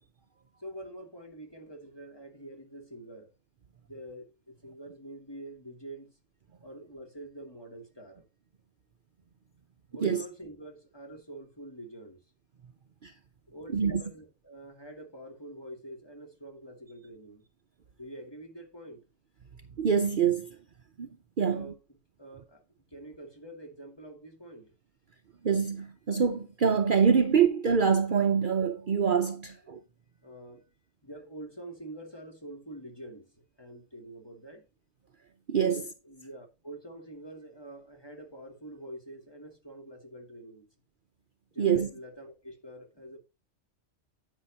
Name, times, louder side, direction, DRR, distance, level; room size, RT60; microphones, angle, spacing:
voice 1, 0.6-3.3 3.8-6.2 6.6-8.2 9.9-12.2 13.5-17.5 18.0-19.1 21.4-24.7 28.4-28.5 30.2-30.7 31.0-34.7 35.6-40.6 41.5-43.2, right 1 dB, 20° left, 2.5 m, -46 dB
voice 2, 19.8-20.6 21.0-21.1 21.4-21.7 25.4-29.8 35.5-35.8 41.6-41.9, right 6 dB, 50° right, 0.8 m, -25 dB
10.0 x 9.0 x 2.8 m
omnidirectional pair, 1.2 m